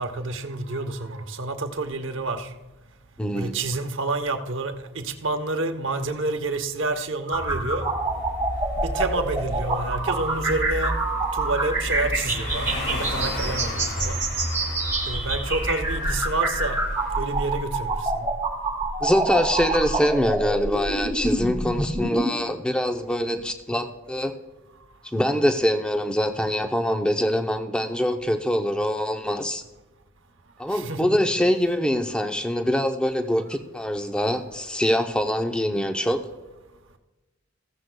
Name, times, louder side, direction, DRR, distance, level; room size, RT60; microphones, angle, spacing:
voice 1, 0.0-2.5 3.3-7.9 8.8-11.0 11.3-14.2 15.1-16.8 17.2-18.2 30.7-31.1, right 2 dB, 65° right, 0.9 m, -29 dB
voice 2, 3.2-3.5 19.0-24.3 25.1-29.6 30.6-36.2, equal, 5° left, 0.6 m, -24 dB
sound 1, 7.3-22.2, right 2 dB, 10° right, 2.2 m, -26 dB
sound 2, 7.6-17.9, left 2 dB, 55° left, 2.1 m, -38 dB
14.5 x 14.0 x 2.3 m
head